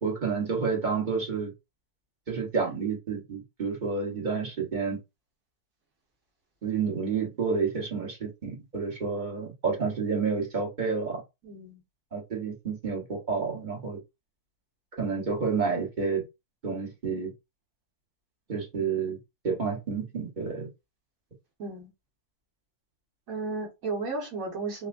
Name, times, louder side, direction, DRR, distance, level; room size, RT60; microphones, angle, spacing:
voice 1, 0.0-1.5 2.3-5.0 6.6-11.2 12.1-14.0 15.0-16.2 16.6-17.3 18.5-19.2 19.4-20.7, right 5 dB, 35° right, 1.1 m, -29 dB
voice 2, 11.4-11.8 21.6-21.9 23.3-24.9, right 3 dB, 60° right, 1.7 m, -34 dB
4.1 x 2.2 x 2.5 m
omnidirectional pair, 1.6 m